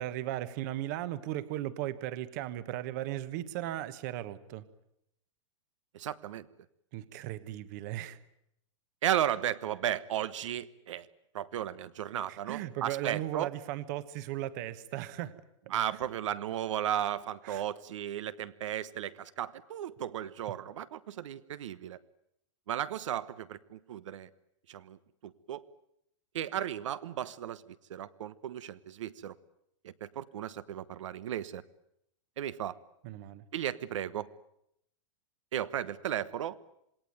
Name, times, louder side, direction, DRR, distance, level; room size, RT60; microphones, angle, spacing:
voice 1, 0.0-4.6 6.9-8.2 12.3-15.3 17.4-17.6 33.0-33.4, right 13 dB, 35° right, 14 dB, 1.2 m, -37 dB
voice 2, 5.9-6.5 9.0-11.1 11.3-13.5 15.7-22.0 22.7-24.3 24.7-25.0 25.2-25.6 26.3-29.3 29.8-31.6 32.4-32.8 33.5-34.3 35.5-36.6, right 11 dB, 75° right, 14 dB, 1.2 m, -35 dB
27.5 x 19.5 x 9.5 m, 0.78 s
supercardioid pair, 175°, 16 cm